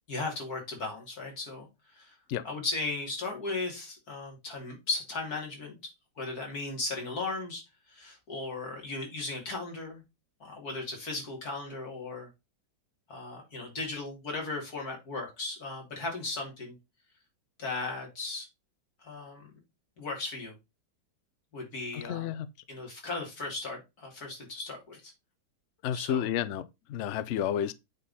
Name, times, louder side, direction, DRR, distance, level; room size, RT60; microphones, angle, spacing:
voice 1, 0.1-2.2 2.4-10.0 10.4-12.3 13.1-16.8 17.6-18.5 19.0-19.5 20.0-20.5 21.5-22.4 22.7-25.1 25.9-26.3, left 3 dB, 55° left, 3.3 m, -37 dB
voice 2, 21.9-22.5 25.8-27.7, left 10 dB, 85° left, 0.6 m, -31 dB
8.7 x 3.9 x 4.2 m
omnidirectional pair, 1.9 m